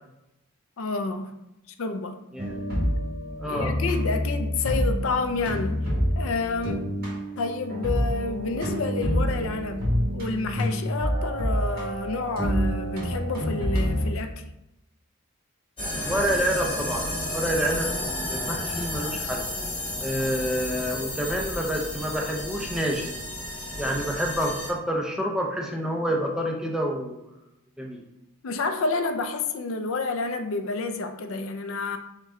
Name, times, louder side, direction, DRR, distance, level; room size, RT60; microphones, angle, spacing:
voice 1, 0.8-1.3 1.8-2.2 3.5-5.8 6.2-6.9 7.4-14.3 28.4-32.0, left 3 dB, 70° left, 7 dB, 0.4 m, -29 dB
sound 1, 2.4-14.1, equal, 45° right, 1.5 m, -27 dB
voice 2, 3.4-3.8 16.0-19.5 20.0-23.1 23.8-27.3 27.8-28.0, equal, 5° right, -1 dB, 0.5 m, -28 dB
sound 2, 15.8-24.7, left 1 dB, 25° left, 1.0 m, -32 dB
6.0 x 2.2 x 3.6 m, 0.89 s
head